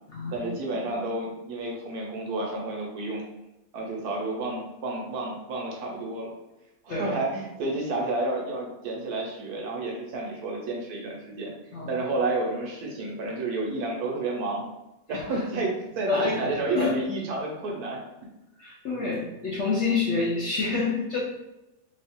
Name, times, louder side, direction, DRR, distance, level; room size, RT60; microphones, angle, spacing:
voice 1, 0.3-3.2 3.7-6.3 6.8-11.5 11.9-14.6 15.1-18.0 19.1-19.2, right 2 dB, 70° right, -1 dB, 1.2 m, -30 dB
voice 2, 11.7-12.0 15.1-15.2 16.1-17.0 18.6-21.2, left 4 dB, 60° left, -5 dB, 0.8 m, -28 dB
3.1 x 2.3 x 4.2 m, 0.94 s
omnidirectional pair, 1.8 m